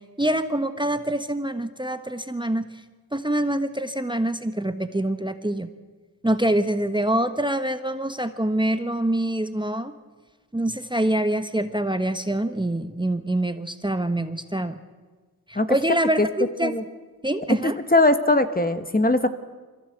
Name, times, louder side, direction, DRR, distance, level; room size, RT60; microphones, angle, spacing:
voice 1, 0.2-2.7 3.1-5.7 6.2-9.9 10.5-14.8 15.5-16.7 17.2-17.8, right 1 dB, 10° right, 9 dB, 1.2 m, -25 dB
voice 2, 17.6-19.3, left 2 dB, 25° left, 9 dB, 1.4 m, -20 dB
23.0 x 16.0 x 8.0 m, 1.3 s
cardioid pair, 45°, 37 cm